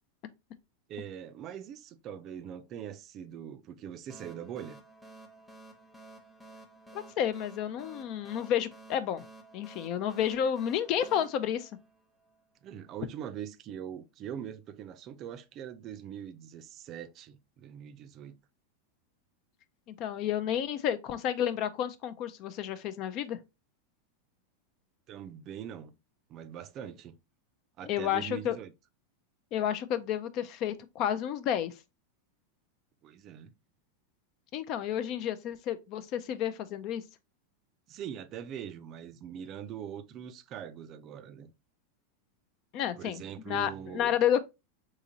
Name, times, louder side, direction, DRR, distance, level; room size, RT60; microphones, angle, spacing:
voice 1, 0.9-4.8 12.6-18.4 25.1-25.9 26.3-27.2 27.8-28.7 33.0-33.5 37.9-41.5 43.0-44.1, right 9 dB, 40° right, 0.4 m, -42 dB
sound 1, 4.1-12.4, right 2 dB, 5° left, 0.9 m, -53 dB
voice 2, 6.9-9.2 9.5-11.7 19.9-23.4 27.8-28.6 29.5-31.7 34.5-37.0 42.7-44.4, left 10 dB, 50° left, 0.4 m, -31 dB
3.6 x 3.0 x 2.7 m
hypercardioid pair, 105°, 0 cm